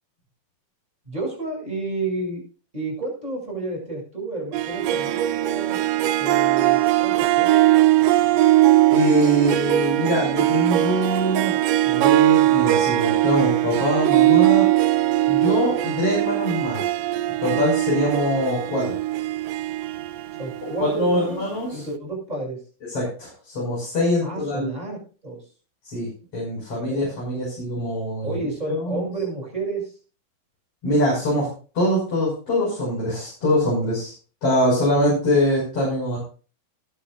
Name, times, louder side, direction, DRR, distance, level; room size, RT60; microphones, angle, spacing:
voice 1, 1.1-2.4 2.7-5.8 6.2-7.8 20.4-21.4 21.7-22.6 24.2-25.4 26.9-27.0 28.2-29.9, right 2 dB, 10° right, -1 dB, 7.5 m, -31 dB
Harp, 4.5-21.3, right 15 dB, 75° right, 1.6 m, -20 dB
voice 2, 8.9-11.6 11.9-14.7 15.3-16.9 17.4-19.0 20.8-21.8 22.9-24.7 25.8-28.4 28.7-29.0 30.8-31.5 31.7-34.1 34.4-36.2, equal, 45° left, -6 dB, 7.1 m, -23 dB
18.5 x 12.0 x 2.5 m, 0.37 s
omnidirectional pair, 3.7 m